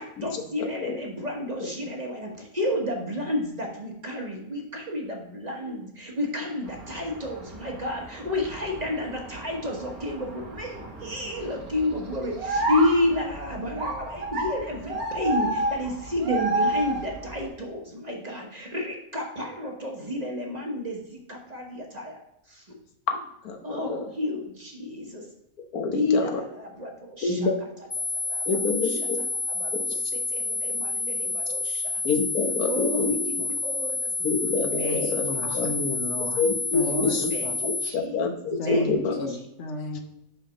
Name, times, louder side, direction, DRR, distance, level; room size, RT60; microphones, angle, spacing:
voice 1, 0.0-22.7 23.6-25.3 25.9-27.5 28.0-28.5 28.8-29.1 29.5-32.0 32.7-34.5 34.8-35.9 36.8-38.2 38.6-39.4, left 1 dB, 30° right, 0 dB, 1.2 m, -31 dB
sound 1, 6.7-17.5, right 2 dB, 75° right, 2.0 m, -32 dB
voice 2, 23.4-24.0 25.7-26.3 27.2-27.5 28.5-29.2 29.7-29.8 32.0-33.1 34.2-35.7 36.4-37.3 37.6-39.3 39.9-40.0, left 4 dB, 85° left, 3 dB, 1.5 m, -27 dB
sound 2, 27.9-37.9, left 3 dB, 15° left, 1.5 m, -29 dB
voice 3, 34.6-36.4 36.7-37.1 37.4-37.5 38.6-40.0, left 1 dB, 55° left, 5 dB, 1.1 m, -33 dB
5.8 x 5.7 x 5.1 m, 0.83 s
omnidirectional pair, 1.5 m